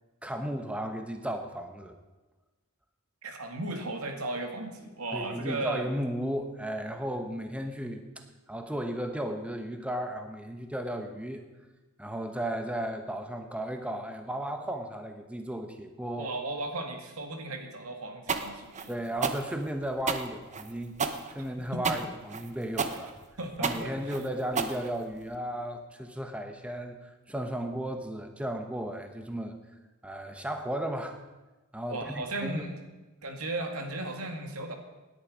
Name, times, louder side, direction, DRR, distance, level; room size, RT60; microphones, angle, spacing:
voice 1, 0.2-1.9 5.1-11.5 12.0-16.3 18.9-21.0 21.3-23.1 23.6-29.5 30.0-31.2 31.7-32.7, right 1 dB, 5° right, 5 dB, 1.0 m, -35 dB
voice 2, 3.2-5.9 16.2-18.9 21.3-21.4 21.7-21.8 23.4-23.9 31.9-32.8 33.2-34.7, right 2 dB, 80° right, 4 dB, 2.0 m, -36 dB
sound 1, 18.3-25.4, right 5 dB, 35° right, 0.9 m, -32 dB
18.0 x 10.0 x 5.1 m, 1.1 s
head